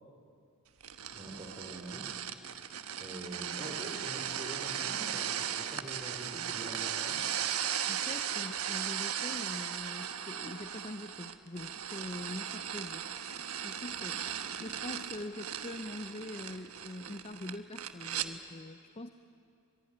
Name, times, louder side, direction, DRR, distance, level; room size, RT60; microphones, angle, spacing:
sound 1, 0.8-18.3, right 9 dB, 90° right, 1.3 m, -37 dB
voice 1, 1.1-2.2 3.0-7.2, right 1 dB, 20° right, -2 dB, 3.4 m, -45 dB
voice 2, 7.9-19.1, left 1 dB, 30° left, 8 dB, 0.7 m, -44 dB
24.0 x 22.5 x 9.8 m, 2.4 s
head